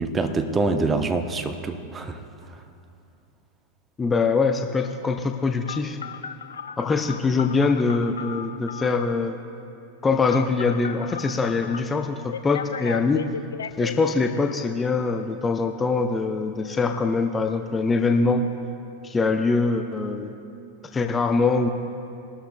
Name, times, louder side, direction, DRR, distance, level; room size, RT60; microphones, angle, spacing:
voice 1, 0.0-2.2, right 3 dB, 15° right, 7 dB, 0.8 m, -25 dB
voice 2, 4.0-6.0 6.8-9.4 10.0-13.4 13.8-18.5 19.0-20.3 20.9-21.7, left 4 dB, 15° left, 6 dB, 0.6 m, -23 dB
Telephone, 5.7-9.0 10.3-11.8 12.3-13.9, left 7 dB, 70° left, 0.4 m, -35 dB
21.5 x 12.5 x 2.3 m, 2.7 s
figure-of-eight pair, 90°, 0 cm